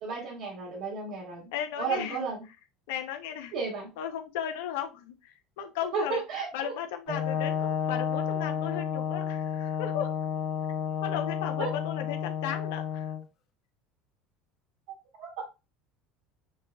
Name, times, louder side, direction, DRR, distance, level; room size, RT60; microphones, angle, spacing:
voice 1, 0.0-1.4 1.8-2.4 3.5-3.9 5.9-6.7 11.6-11.7 15.2-15.4, right 5 dB, 70° right, -4 dB, 1.6 m, -33 dB
voice 2, 1.5-2.3 2.9-3.5 4.0-6.2 6.5-10.1 11.0-13.1, left 9 dB, 80° left, 5 dB, 0.7 m, -35 dB
Brass instrument, 7.1-13.2, left 8 dB, 55° left, 0.9 m, -31 dB
6.2 x 2.4 x 2.2 m, 0.26 s
supercardioid pair, 110°, 0 cm